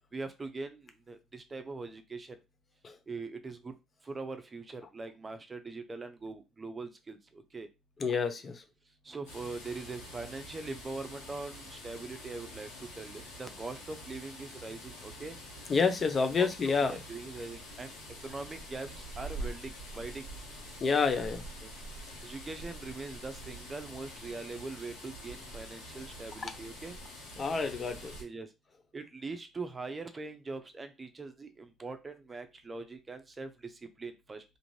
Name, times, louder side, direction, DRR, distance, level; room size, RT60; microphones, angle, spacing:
voice 1, 0.1-2.4 3.1-3.7 4.0-7.7 9.0-15.4 16.4-17.9 18.2-20.3 21.6-21.7 22.2-27.0 28.2-28.5 28.9-33.7 34.0-34.4, right 3 dB, 30° right, 8 dB, 0.6 m, -42 dB
voice 2, 8.0-8.6 15.7-17.0 20.8-21.4 26.4-26.5 27.4-28.2, left 5 dB, 40° left, 8 dB, 0.6 m, -29 dB
sound 1, 9.3-28.2, equal, 90° left, 1.1 m, -46 dB
2.5 x 2.5 x 3.1 m, 0.25 s
hypercardioid pair, 65°, 0 cm